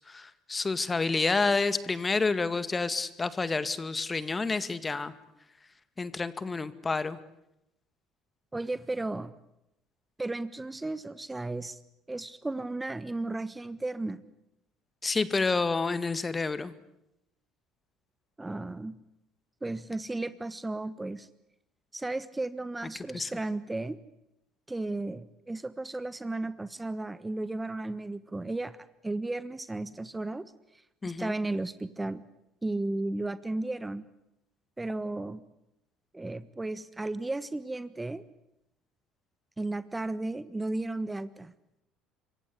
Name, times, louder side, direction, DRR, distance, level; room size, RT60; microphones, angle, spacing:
voice 1, 0.1-5.1 6.0-7.2 15.0-16.7 23.1-23.3 31.0-31.3, left 4 dB, 25° left, 14 dB, 2.0 m, -29 dB
voice 2, 8.5-9.3 10.2-11.8 12.1-14.2 18.4-19.0 19.6-21.3 21.9-24.0 24.7-28.8 29.0-30.5 31.2-32.2 32.6-34.0 34.8-35.4 36.1-38.2 39.6-41.5, right 2 dB, 15° right, 15 dB, 1.3 m, -34 dB
27.0 x 23.5 x 8.3 m, 0.83 s
hypercardioid pair, 60°, 0 cm